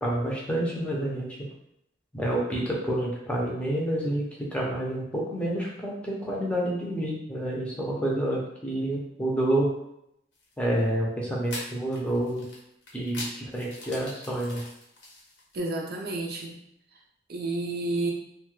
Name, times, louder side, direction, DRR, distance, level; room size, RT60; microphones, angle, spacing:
voice 1, 0.0-1.5 2.1-9.7 10.6-12.4 12.9-14.6, right 1 dB, 5° left, -4 dB, 0.6 m, -28 dB
sound 1, 10.3-10.5 11.4-15.8, left 2 dB, 85° left, 1.0 m, -42 dB
voice 2, 15.5-16.6 17.3-18.1, right 2 dB, 55° right, 0 dB, 0.5 m, -30 dB
2.7 x 2.3 x 3.1 m, 0.77 s
head